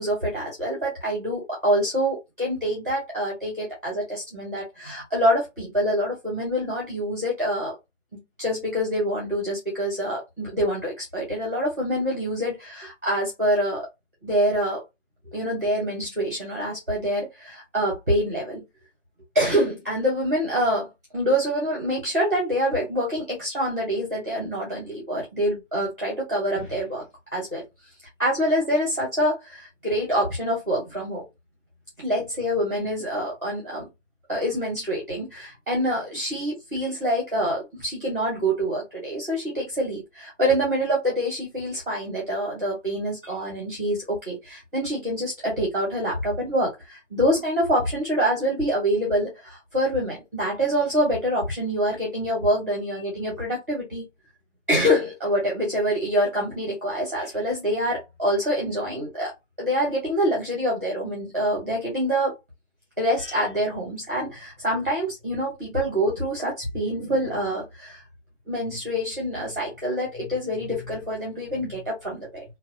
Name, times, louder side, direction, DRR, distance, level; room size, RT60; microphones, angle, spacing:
voice 1, 0.0-7.8 8.1-13.9 14.2-14.8 15.3-18.6 19.3-20.9 21.1-27.0 27.3-27.6 28.2-31.2 32.0-33.9 34.3-54.0 54.7-59.3 59.6-62.3 63.0-68.0 68.5-72.4, equal, 15° right, 0.7 m, -26 dB
4.0 x 2.2 x 2.4 m
figure-of-eight pair, 160°, 37 cm